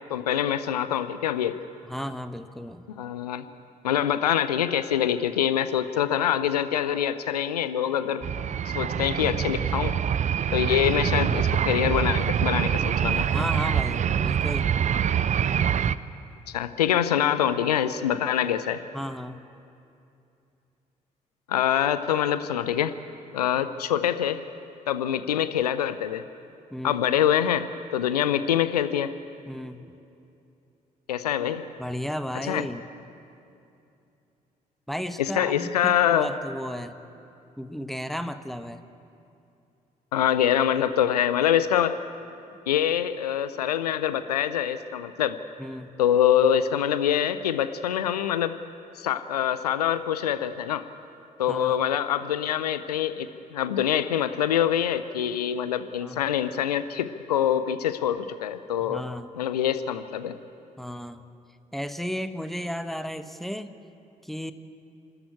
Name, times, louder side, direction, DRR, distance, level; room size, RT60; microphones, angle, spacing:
voice 1, 0.1-1.6 3.0-3.4 3.8-8.2 8.7-10.0 10.5-13.3 16.5-18.8 21.5-22.9 23.3-24.4 24.9-26.2 26.8-29.1 31.1-31.6 32.4-32.7 35.2-36.3 40.1-41.9 42.7-45.4 46.0-48.5 49.0-50.8 51.4-59.0 59.3-60.3, left 10 dB, 80° left, 13 dB, 0.6 m, -25 dB
voice 2, 1.8-2.8 13.3-14.7 18.9-19.4 26.7-27.0 29.5-29.9 31.8-32.8 34.9-37.0 37.6-38.8 45.6-45.9 51.5-51.8 56.0-56.2 58.8-59.3 60.8-61.2 61.7-63.7 64.2-64.5, equal, ahead, 10 dB, 1.1 m, -34 dB
sound 1, 8.2-16.0, right 8 dB, 35° right, 0.6 m, -25 dB
28.0 x 13.0 x 8.6 m, 2.7 s
figure-of-eight pair, 45°, 20 cm